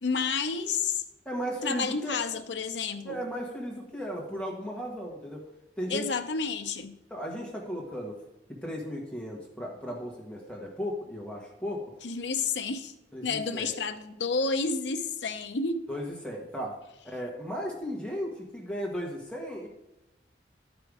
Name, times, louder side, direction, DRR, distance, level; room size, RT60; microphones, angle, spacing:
voice 1, 0.0-1.0 1.6-3.2 5.9-6.9 12.0-12.9 13.2-15.8, left 4 dB, 80° left, 8 dB, 0.7 m, -30 dB
voice 2, 1.2-2.1 3.0-5.4 5.8-6.1 7.1-8.2 8.5-11.9 13.1-13.7 15.9-16.8 17.0-19.7, equal, 5° left, -2 dB, 1.4 m, -35 dB
11.5 x 5.3 x 4.8 m, 0.96 s
head